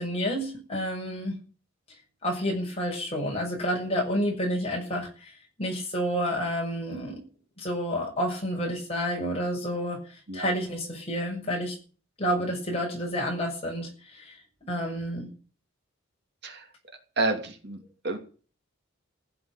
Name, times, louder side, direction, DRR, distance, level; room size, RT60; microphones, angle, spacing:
voice 1, 0.0-1.4 2.2-5.3 5.6-7.2 7.6-11.7 12.2-14.4 14.7-15.3, equal, 30° left, 0 dB, 6.4 m, -29 dB
voice 2, 17.2-18.2, right 2 dB, 50° right, 4 dB, 2.7 m, -30 dB
15.5 x 7.8 x 9.9 m, 0.39 s
head